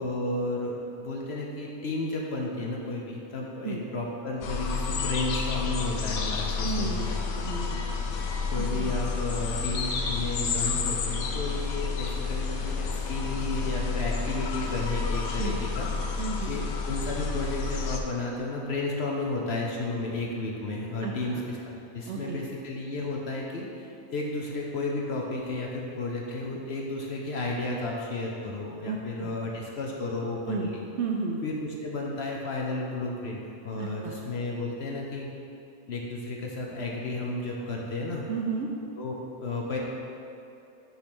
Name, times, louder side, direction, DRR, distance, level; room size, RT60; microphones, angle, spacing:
voice 1, 0.0-7.2 8.5-15.9 16.5-21.6 21.9-30.8 31.4-35.3 35.9-38.2 39.0-39.8, left 2 dB, 55° left, -2 dB, 0.8 m, -33 dB
sound 1, 4.4-18.0, left 4 dB, 80° left, 1.1 m, -30 dB
voice 2, 6.6-7.0 7.4-7.9 8.6-9.0 15.4-15.6 16.2-16.6 21.0-21.4 22.1-22.4 28.8-29.3 30.5-30.7 31.0-31.4 33.7-34.2 38.3-38.7, right 4 dB, 65° right, 0 dB, 0.7 m, -33 dB
6.9 x 3.3 x 5.9 m, 2.7 s
omnidirectional pair, 1.5 m